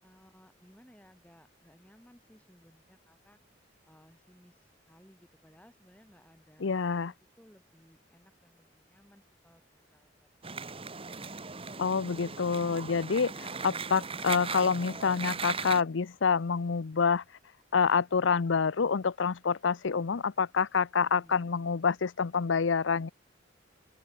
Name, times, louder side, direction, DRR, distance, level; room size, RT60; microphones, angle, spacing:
voice 1, 0.0-3.4 3.9-10.1 21.2-21.5, equal, 5° left, 5.1 m, -60 dB
voice 2, 6.6-7.1 11.8-17.2 17.7-23.1, left 5 dB, 85° left, 0.6 m, -27 dB
sound 1, 10.4-15.8, right 5 dB, 30° right, 1.9 m, -38 dB
open air
head